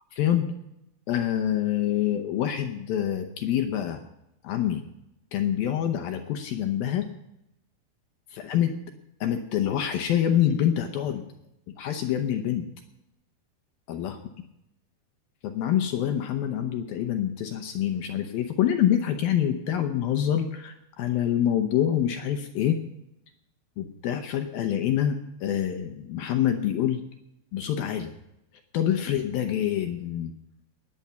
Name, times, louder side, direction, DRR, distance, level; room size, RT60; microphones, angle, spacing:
voice 1, 0.1-0.5 1.1-4.0 4.4-4.8 5.3-7.1 8.3-8.8 9.2-11.3 11.8-12.7 13.9-14.2 15.4-22.8 23.8-27.0 27.5-28.1 28.7-30.3, left 10 dB, 75° left, 6 dB, 2.3 m, -26 dB
20.5 x 8.7 x 5.7 m, 0.83 s
omnidirectional pair, 5.1 m